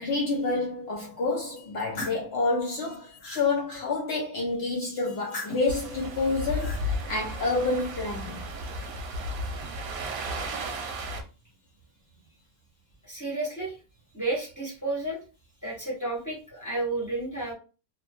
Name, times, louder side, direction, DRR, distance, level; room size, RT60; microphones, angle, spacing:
voice 1, 0.0-8.4, left 3 dB, 60° left, 0.7 m, -28 dB
sound 1, 1.6-2.3 2.8-3.5 5.1-5.8 6.3-6.8, left 2 dB, 75° left, 1.4 m, -39 dB
sound 2, 5.7-11.2, equal, 70° right, 1.0 m, -34 dB
voice 2, 13.0-13.8 14.1-15.2 15.6-17.5, right 2 dB, 15° left, 0.9 m, -31 dB
3.0 x 2.2 x 2.5 m
omnidirectional pair, 1.7 m